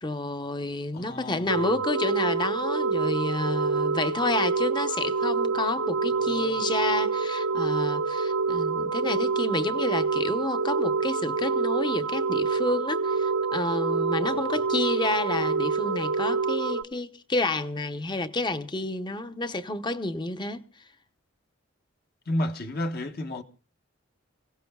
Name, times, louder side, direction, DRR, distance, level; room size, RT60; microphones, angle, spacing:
voice 1, 0.0-20.6, left 2 dB, 25° left, 0.8 m, -30 dB
voice 2, 0.9-1.7 6.1-6.6 14.2-14.6 22.3-23.4, left 1 dB, 50° left, 1.2 m, -33 dB
sound 1, 1.5-16.8, right 4 dB, 85° right, 0.8 m, -27 dB
29.0 x 16.5 x 2.3 m
head